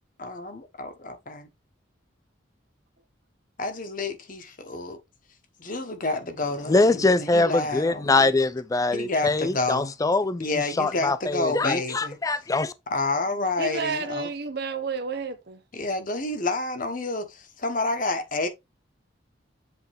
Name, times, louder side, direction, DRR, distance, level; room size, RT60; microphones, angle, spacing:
voice 1, 0.2-1.5 3.6-5.0 5.6-8.3 8.9-9.9 10.4-12.2 12.9-14.3 15.7-18.5, left 2 dB, 45° left, 1.2 m, -29 dB
voice 2, 6.7-10.5 10.8-12.7, left 3 dB, 20° left, 0.4 m, -23 dB
voice 3, 13.6-15.6, right 4 dB, 55° right, 0.8 m, -31 dB
8.0 x 3.7 x 3.5 m
head